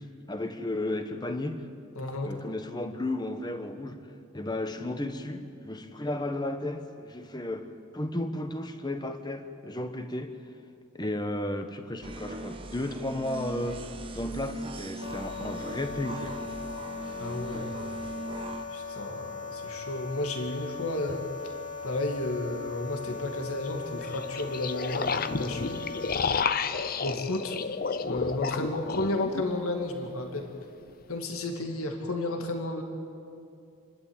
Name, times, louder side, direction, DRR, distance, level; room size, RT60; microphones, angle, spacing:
voice 1, 0.0-1.7 2.2-10.3 10.9-16.4, left 1 dB, 20° left, 1.1 m, -34 dB
voice 2, 2.0-2.3 17.2-17.7 18.7-21.2 21.8-25.9 27.0-27.6 28.0-30.5 31.1-32.8, left 2 dB, 85° left, 2.1 m, -32 dB
sound 1, 12.0-18.6, right 1 dB, 25° right, 1.1 m, -39 dB
sound 2, 15.0-26.2, left 5 dB, 70° left, 3.9 m, -39 dB
sound 3, 21.1-21.2 24.0-29.5, left 5 dB, 40° left, 0.7 m, -31 dB
28.0 x 12.0 x 8.7 m
head